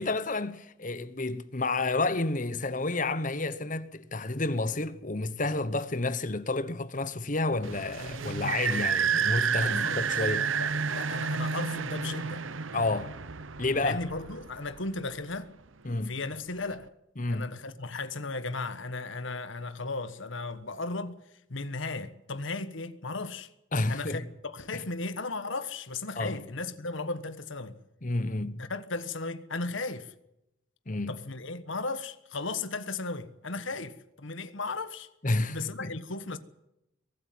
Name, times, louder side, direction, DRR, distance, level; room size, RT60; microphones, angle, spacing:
voice 1, 0.0-10.5 12.7-13.2 13.6-14.0 15.8-16.2 17.2-17.5 23.7-24.2 24.7-24.8 26.2-26.4 28.0-28.6 30.9-31.1 35.2-36.0, left 2 dB, 40° left, 1.1 m, -30 dB
sound 1, 7.6-15.0, right 6 dB, 75° right, 1.0 m, -30 dB
voice 2, 9.5-10.1 10.4-12.4 13.8-15.5 15.9-16.9 17.3-21.2 21.5-23.5 23.9-27.8 28.6-30.1 31.1-35.1 35.5-36.4, left 3 dB, 70° left, 1.4 m, -36 dB
23.0 x 13.0 x 9.5 m
head